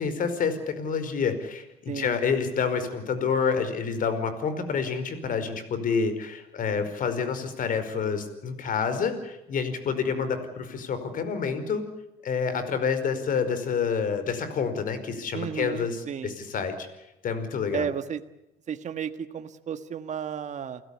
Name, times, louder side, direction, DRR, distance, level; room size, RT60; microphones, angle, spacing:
voice 1, 0.0-11.8 12.2-16.9 17.2-17.9, left 6 dB, 55° left, 11 dB, 5.0 m, -28 dB
voice 2, 15.3-16.4 17.7-18.2 18.7-20.8, right 7 dB, 45° right, 9 dB, 1.6 m, -33 dB
29.5 x 16.5 x 8.6 m, 0.93 s
cardioid pair, 110°, 17 cm